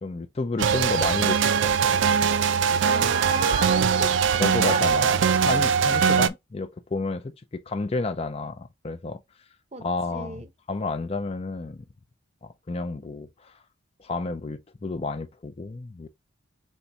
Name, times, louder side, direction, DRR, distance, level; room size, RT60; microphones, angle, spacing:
voice 1, 0.0-1.8 3.3-3.4 4.4-9.2 9.8-10.4 10.7-11.8 12.4-13.6 14.0-16.1, left 3 dB, 30° left, 0.4 m, -31 dB
sound 1, 0.6-6.3, right 6 dB, 65° right, 0.4 m, -21 dB
voice 2, 2.8-4.1 4.6-4.9 9.7-9.8 10.1-10.5, right 3 dB, 35° right, 0.7 m, -32 dB
5.4 x 3.5 x 2.8 m
head